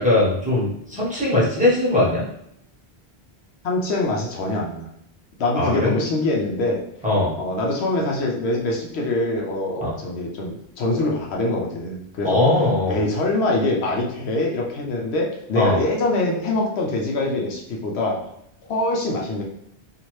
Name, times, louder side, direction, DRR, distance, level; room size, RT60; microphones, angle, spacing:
voice 1, 0.0-2.2 5.5-5.9 7.0-7.3 9.8-9.9 12.2-13.0 15.5-15.8, left 2 dB, 10° right, -7 dB, 1.0 m, -20 dB
voice 2, 3.6-4.9 5.4-6.8 7.4-12.4 12.9-18.2 18.7-19.4, left 2 dB, 80° left, -1 dB, 0.9 m, -24 dB
2.7 x 2.5 x 3.1 m, 0.74 s
omnidirectional pair, 1.1 m